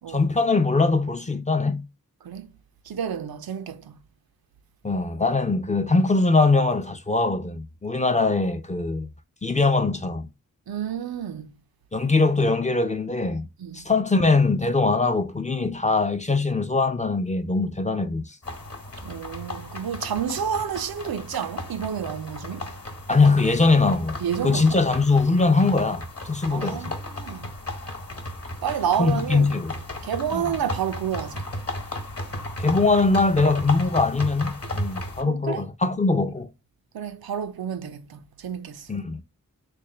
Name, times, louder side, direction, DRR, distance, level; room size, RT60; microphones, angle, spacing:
voice 1, 0.1-1.8 4.8-9.1 9.4-10.3 11.9-13.5 13.7-18.4 23.1-26.9 29.0-29.7 30.3-30.5 32.6-36.5 38.9-39.2, left 3 dB, 20° left, 0.4 m, -22 dB
voice 2, 2.9-4.0 10.7-11.5 13.6-13.8 19.0-22.7 24.2-24.8 26.5-27.5 28.6-29.5 30.0-31.4 35.2-35.6 36.9-38.9, right 8 dB, 85° right, 0.5 m, -30 dB
sound 1, 18.4-35.2, left 1 dB, 40° left, 1.0 m, -35 dB
3.3 x 2.1 x 4.3 m
wide cardioid pair, 80°, 36 cm